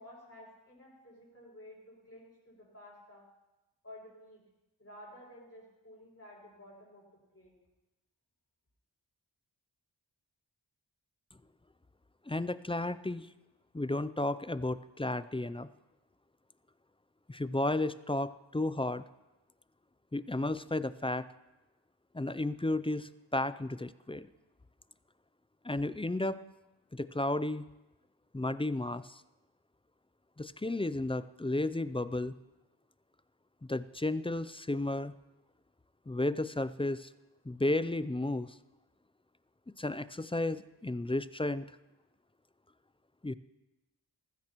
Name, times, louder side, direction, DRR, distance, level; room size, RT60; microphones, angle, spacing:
voice 1, 0.0-3.3 3.8-4.4 4.8-7.6, left 1 dB, 30° left, -5 dB, 6.3 m, -53 dB
voice 2, 12.3-13.3 13.7-15.7 17.3-19.0 20.1-21.3 22.1-24.3 25.6-26.4 26.9-27.6 28.3-29.2 30.4-32.4 33.7-35.1 36.1-37.1 37.5-38.5 39.8-41.7 43.2-43.3, left 2 dB, 15° left, 14 dB, 0.4 m, -33 dB
19.5 x 15.0 x 3.0 m, 1.0 s
wide cardioid pair, 55°, 45 cm